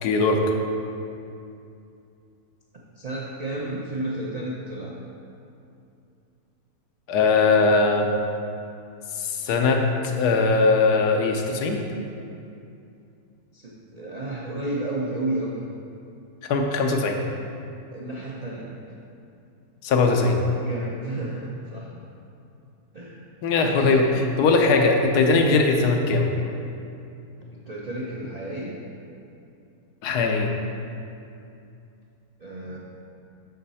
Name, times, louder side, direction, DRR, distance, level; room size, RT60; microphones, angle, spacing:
voice 1, 0.0-0.5 7.1-8.1 9.1-11.8 16.5-17.2 19.8-20.4 23.4-26.3 30.0-30.5, left 3 dB, 85° left, 3 dB, 1.2 m, -20 dB
voice 2, 3.0-5.0 13.5-15.6 17.9-18.7 20.6-21.9 22.9-23.3 23.6-24.0 27.5-28.8 32.4-32.8, right 1 dB, 65° right, -4 dB, 0.4 m, -32 dB
6.4 x 5.5 x 4.1 m, 2.6 s
omnidirectional pair, 1.7 m